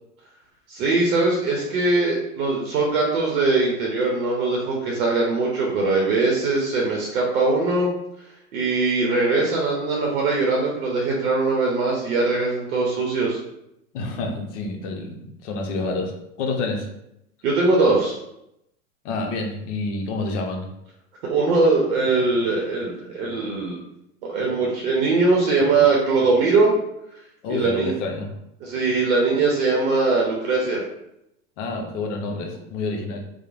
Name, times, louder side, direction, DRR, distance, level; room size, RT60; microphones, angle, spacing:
voice 1, 0.7-7.9 8.5-13.4 17.4-18.2 21.2-23.8 24.2-26.7 27.5-27.9 28.6-30.8, right 3 dB, 65° right, -2 dB, 0.7 m, -21 dB
voice 2, 13.9-16.9 19.0-20.7 27.4-28.3 31.6-33.2, left 3 dB, 50° left, 2 dB, 0.7 m, -28 dB
3.0 x 2.1 x 2.4 m, 0.82 s
hypercardioid pair, 110°, 45 cm